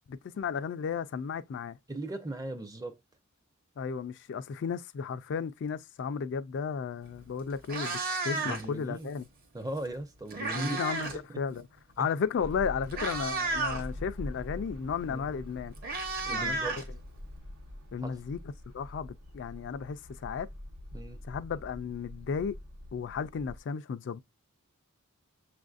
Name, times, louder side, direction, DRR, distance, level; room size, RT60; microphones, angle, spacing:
voice 1, 0.0-1.8 3.8-9.3 10.5-11.7 12.0-15.7 16.3-16.6 17.9-18.4 18.7-20.5 21.2-22.6 22.9-24.2, left 6 dB, 55° left, 0.3 m, -34 dB
voice 2, 1.9-3.0 8.3-9.1 9.5-10.8 11.1-11.2 12.0-12.1 15.1-15.4 16.2-16.8 18.0-18.2 20.9-21.2, right 2 dB, 15° right, 0.5 m, -38 dB
Meow, 7.0-7.2 7.5-8.8 9.9-11.2 11.5-11.8 12.5-12.6 12.9-13.8 15.1-15.2 15.5-17.4, right 3 dB, 45° right, 0.9 m, -33 dB
sound 1, 12.4-23.6, left 1 dB, 90° right, 1.1 m, -45 dB
6.9 x 2.5 x 2.4 m
head